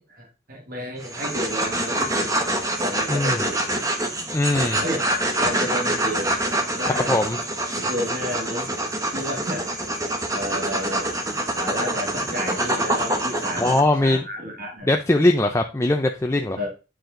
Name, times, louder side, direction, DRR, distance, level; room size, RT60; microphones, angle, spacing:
voice 1, 0.0-2.4 2.8-3.7 4.8-5.0 5.4-6.3 6.8-7.2 7.7-8.7 9.1-9.7 10.3-11.1 11.5-13.7 14.0-14.9 16.6-16.7, equal, 45° right, 0 dB, 1.5 m, -31 dB
sound 1, 1.0-13.8, right 1 dB, 15° right, 1.0 m, -25 dB
voice 2, 3.1-3.4 4.3-4.8 6.8-7.4 13.6-14.2 14.9-16.6, left 1 dB, 15° left, 4 dB, 0.5 m, -21 dB
9.4 x 4.7 x 3.8 m, 0.32 s
head